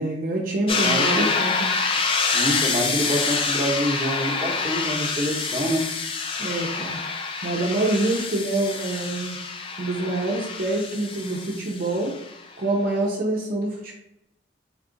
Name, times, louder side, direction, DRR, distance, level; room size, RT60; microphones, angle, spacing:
voice 1, 0.0-1.8 6.4-7.0 7.4-9.4 9.8-12.1 12.6-13.9, right 2 dB, 50° right, -2 dB, 0.6 m, -26 dB
sound 1, 0.7-12.3, left 4 dB, 30° left, 0.3 m, -27 dB
voice 2, 0.7-1.3 2.0-5.9, equal, 20° right, -4 dB, 0.8 m, -27 dB
3.6 x 2.4 x 3.7 m, 0.84 s
head